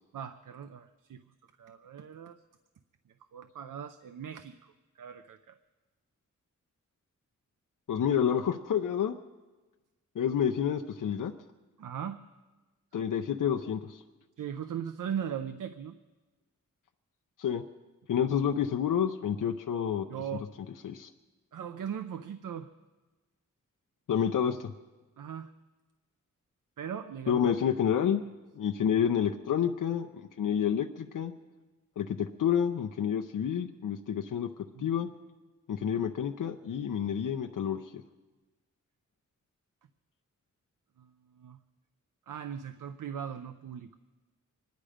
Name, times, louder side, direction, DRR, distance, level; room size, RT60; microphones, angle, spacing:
voice 1, 0.1-1.2 1.6-2.4 3.3-5.6 11.8-12.2 14.4-16.0 20.1-20.5 21.5-22.7 25.2-25.5 26.8-27.5 34.7-35.0 41.0-41.6 42.3-44.0, right 8 dB, 90° right, 9 dB, 0.6 m, -39 dB
voice 2, 7.9-9.2 10.2-11.3 12.9-14.0 17.4-17.6 18.1-20.1 20.8-21.1 24.1-24.7 27.3-28.2 28.5-31.3 32.0-34.5 34.8-35.1 35.7-37.9, left 8 dB, 90° left, 3 dB, 0.6 m, -29 dB
25.5 x 10.5 x 5.0 m, 1.2 s
wide cardioid pair, 100°, 31 cm